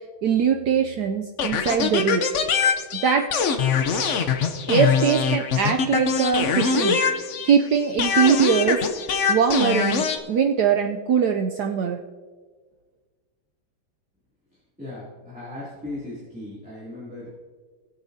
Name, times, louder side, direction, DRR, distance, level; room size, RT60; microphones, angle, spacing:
voice 1, 0.2-2.3 3.0-3.3 4.7-7.0 7.4-8.8 9.3-12.0, right 7 dB, 75° right, 4 dB, 0.9 m, -21 dB
sound 1, 1.4-7.6 8.0-10.2, left 6 dB, 85° left, 0.6 m, -23 dB
voice 2, 14.8-17.3, left 2 dB, 5° right, -9 dB, 2.5 m, -37 dB
20.0 x 8.1 x 2.7 m, 1.5 s
omnidirectional pair, 2.3 m